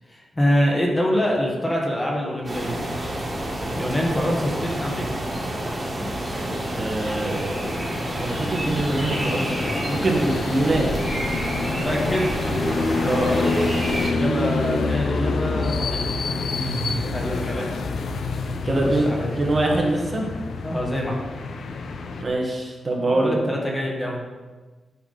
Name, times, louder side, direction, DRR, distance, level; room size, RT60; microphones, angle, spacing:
voice 1, 0.1-2.8 3.8-5.0 6.0-6.2 11.8-12.3 14.2-16.1 17.1-17.7 18.8-19.4 20.6-21.2 23.1-24.2, equal, 15° left, -2 dB, 1.3 m, -25 dB
sound 1, 2.4-14.1, right 1 dB, 20° right, 2.0 m, -28 dB
sound 2, 6.4-22.2, left 3 dB, 70° left, 0.7 m, -28 dB
voice 2, 6.7-7.5 8.2-9.5 9.9-10.9 13.0-13.6 16.5-17.1 18.6-19.1 19.4-20.3 22.2-23.3, right 2 dB, 35° right, -1 dB, 1.4 m, -24 dB
9.8 x 5.9 x 3.9 m, 1.3 s
wide cardioid pair, 145°, 0 cm